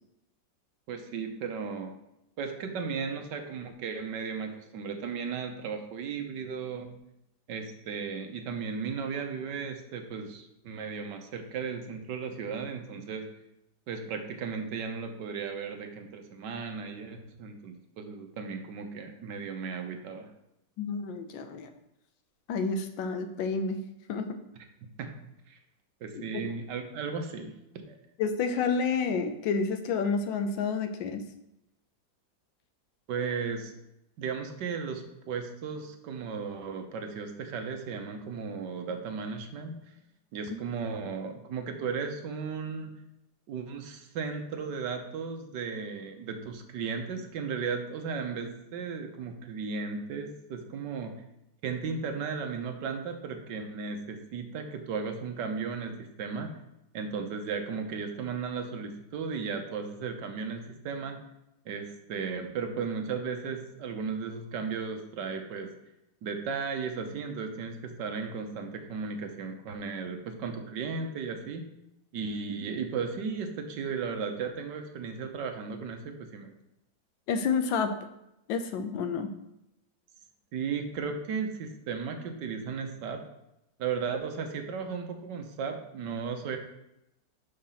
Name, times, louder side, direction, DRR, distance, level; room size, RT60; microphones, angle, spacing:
voice 1, 0.9-1.9 2.4-6.9 7.5-13.3 13.9-20.3 25.0-25.1 25.5-25.6 26.0-28.0 33.1-33.8 34.2-39.7 40.3-42.9 43.5-51.1 51.6-56.5 56.9-61.2 61.6-65.7 66.2-71.6 72.1-76.5 80.5-83.2 83.8-86.6, right 5 dB, 70° right, 5 dB, 1.4 m, -35 dB
voice 2, 20.8-21.7 22.5-23.8 24.1-24.4 26.3-26.5 28.2-31.3 77.3-77.9 78.5-79.3, left 5 dB, 85° left, 8 dB, 1.5 m, -29 dB
5.7 x 5.1 x 5.6 m, 0.86 s
omnidirectional pair, 2.0 m